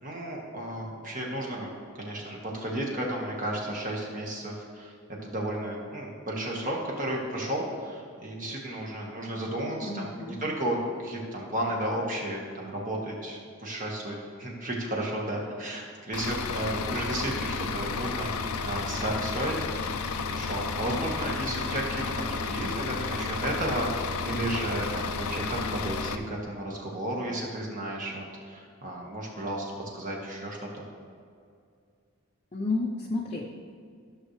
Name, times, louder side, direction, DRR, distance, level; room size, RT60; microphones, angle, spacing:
voice 1, 0.0-1.7 2.0-4.9 5.2-18.3 18.6-20.0 20.3-30.8, right 1 dB, 35° right, -2 dB, 1.5 m, -33 dB
voice 2, 9.8-10.4 32.5-33.7, left 3 dB, 30° left, -2 dB, 0.6 m, -32 dB
Bus / Idling, 16.1-26.2, left 5 dB, 85° left, 0.6 m, -32 dB
14.0 x 6.5 x 3.2 m, 2.3 s
head